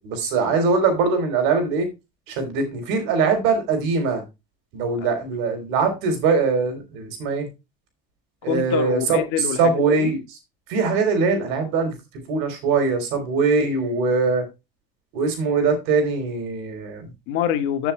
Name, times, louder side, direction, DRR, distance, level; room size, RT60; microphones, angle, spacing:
voice 1, 0.0-1.9 2.3-4.2 4.7-7.5 8.4-9.2 9.6-10.2 10.7-11.9 12.3-14.5 15.1-17.1, right 4 dB, 85° right, 3.8 m, -22 dB
voice 2, 8.4-10.1 17.3-17.9, left 10 dB, 75° left, 1.7 m, -26 dB
15.0 x 6.8 x 2.2 m
cardioid pair, 130°, 20 cm